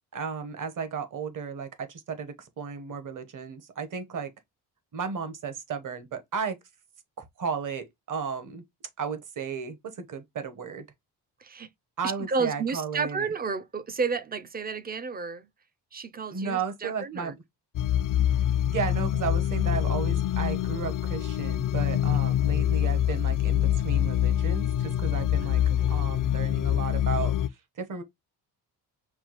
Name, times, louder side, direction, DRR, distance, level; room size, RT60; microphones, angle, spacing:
voice 1, 0.1-4.3 4.9-6.6 7.2-8.6 9.0-10.9 12.0-13.3 16.3-17.3 18.7-25.6 25.9-27.3 27.8-28.0, right 5 dB, 50° right, 1.1 m, -34 dB
voice 2, 12.2-15.5 15.9-17.4 21.9-22.2 25.4-26.0, right 5 dB, 25° right, 0.4 m, -32 dB
sound 1, 17.7-27.5, left 11 dB, 55° left, 0.5 m, -25 dB
5.9 x 2.4 x 2.9 m
cardioid pair, 95°, 41 cm